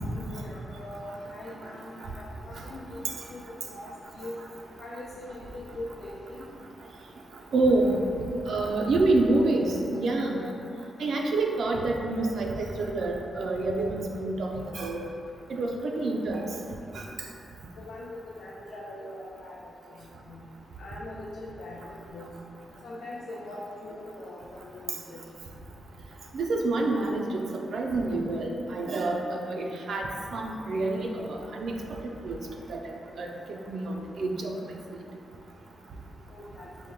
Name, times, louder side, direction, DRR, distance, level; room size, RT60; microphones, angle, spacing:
voice 1, 0.0-3.9 4.1-4.4 4.8-6.4 17.8-20.4 20.8-22.3 22.8-25.3 36.3-36.7, left 1 dB, 80° left, -5 dB, 0.4 m, -42 dB
voice 2, 7.5-8.0 8.5-10.4 11.0-15.0 15.6-16.5 17.0-17.1 26.3-27.4 27.7-31.7 32.2-32.4 32.7-32.8 33.2-33.3 33.7-34.5, right 2 dB, 70° right, 0 dB, 0.4 m, -27 dB
3.6 x 2.1 x 4.4 m, 2.6 s
cardioid pair, 85°, 0 cm